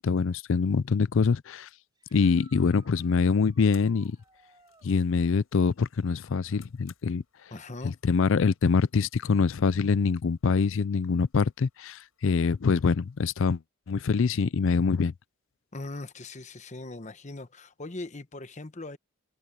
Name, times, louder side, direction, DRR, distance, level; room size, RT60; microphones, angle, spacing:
voice 1, 0.0-1.7 2.1-4.2 4.8-7.2 8.0-13.6 13.9-15.1, left 5 dB, 65° left, 0.4 m, -24 dB
sound 1, 1.9-4.9 8.2-8.3 10.4-10.5 16.7-16.8, right 3 dB, 20° right, 5.3 m, -60 dB
sound 2, 2.7-13.3, left 10 dB, 80° left, 6.5 m, -63 dB
voice 2, 7.5-7.9 15.7-19.0, left 2 dB, 35° left, 1.0 m, -40 dB
head